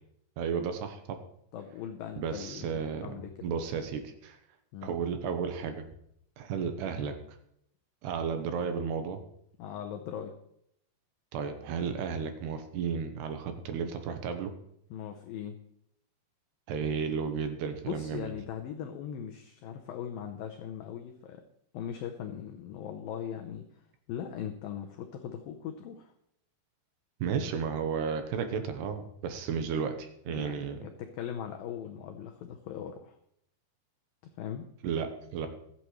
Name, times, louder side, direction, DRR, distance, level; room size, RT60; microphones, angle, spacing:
voice 1, 0.4-1.2 2.2-4.4 4.8-5.9 6.4-7.1 8.0-9.2 11.3-14.5 16.7-18.3 27.2-30.8 34.8-35.5, right 6 dB, 75° right, 7 dB, 2.9 m, -33 dB
voice 2, 1.5-3.3 4.7-4.9 9.6-10.4 14.9-15.6 17.9-21.4 21.7-23.7 24.1-26.1 30.3-33.2 34.4-34.7, left 9 dB, 75° left, 5 dB, 2.1 m, -39 dB
22.5 x 8.5 x 3.2 m, 0.73 s
omnidirectional pair, 5.0 m